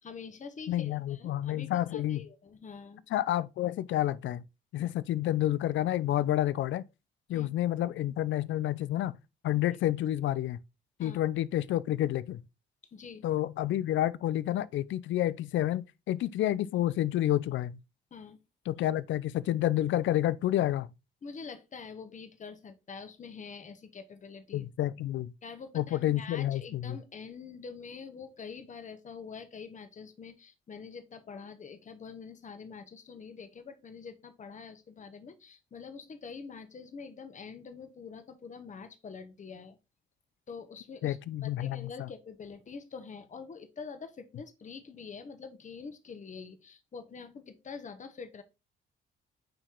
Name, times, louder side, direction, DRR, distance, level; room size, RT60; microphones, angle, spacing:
voice 1, 0.0-3.0 4.8-4.9 7.3-7.5 11.0-11.2 12.9-13.3 18.1-18.4 21.2-24.7 25.4-39.8 40.5-41.2 41.4-48.4, left 5 dB, 40° left, 1.2 m, -45 dB
voice 2, 0.7-2.2 3.1-4.4 4.7-6.9 7.3-9.2 9.4-10.6 11.0-12.4 13.2-17.8 18.7-20.9 24.5-25.3 25.7-27.0 41.0-42.1, left 13 dB, 70° left, 0.5 m, -29 dB
8.8 x 3.1 x 3.7 m
cardioid pair, 90°, 20 cm